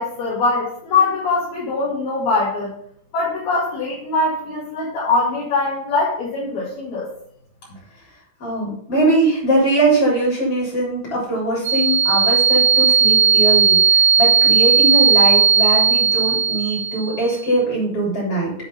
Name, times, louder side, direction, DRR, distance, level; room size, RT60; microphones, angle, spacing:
voice 1, 0.0-2.7 3.1-7.1, left 3 dB, 60° left, -8 dB, 3.7 m, -22 dB
voice 2, 8.4-18.5, right 2 dB, 30° left, -5 dB, 4.1 m, -21 dB
sound 1, 11.6-17.3, right 5 dB, 70° right, 1.2 m, -16 dB
8.9 x 4.7 x 5.4 m, 0.67 s
omnidirectional pair, 5.6 m